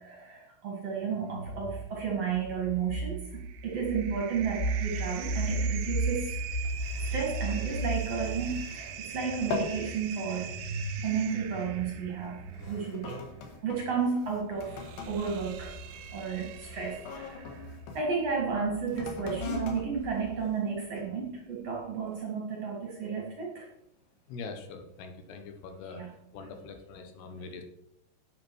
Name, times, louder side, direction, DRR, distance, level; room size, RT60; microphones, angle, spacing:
voice 1, 0.0-6.5 7.1-10.6 11.0-13.2 13.6-15.8 16.1-23.7 25.9-26.1, right 6 dB, 45° right, -2 dB, 2.4 m, -33 dB
sound 1, 1.1-13.5 14.4-20.4, right 2 dB, 20° left, 2.0 m, -36 dB
sound 2, 3.0-17.6, right 9 dB, 85° right, 1.9 m, -43 dB
sound 3, 6.5-9.1 9.3-9.9 10.3-10.6 11.3-11.5 12.2-18.0 18.8-21.2 21.8-21.9, left 5 dB, 65° left, 3.1 m, -42 dB
voice 2, 24.3-26.0 26.3-27.6, left 4 dB, 80° left, 6 dB, 3.2 m, -43 dB
11.0 x 8.2 x 4.6 m, 0.78 s
omnidirectional pair, 4.8 m